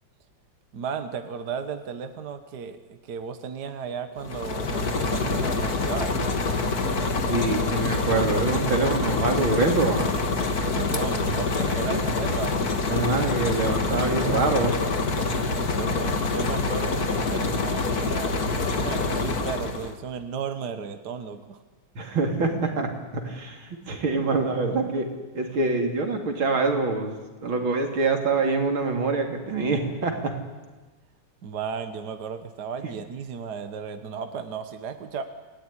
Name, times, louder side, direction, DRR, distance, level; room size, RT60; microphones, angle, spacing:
voice 1, 0.7-6.1 10.4-12.6 15.2-21.6 31.4-35.2, right 6 dB, 55° right, 8 dB, 1.8 m, -35 dB
sound 1, 4.2-20.0, left 3 dB, 50° left, 2.3 m, -26 dB
voice 2, 7.3-10.2 11.9-12.0 12.9-14.8 22.0-25.1 25.3-30.4, right 3 dB, 85° right, 3 dB, 3.9 m, -25 dB
28.0 x 18.0 x 10.0 m, 1.3 s
omnidirectional pair, 2.2 m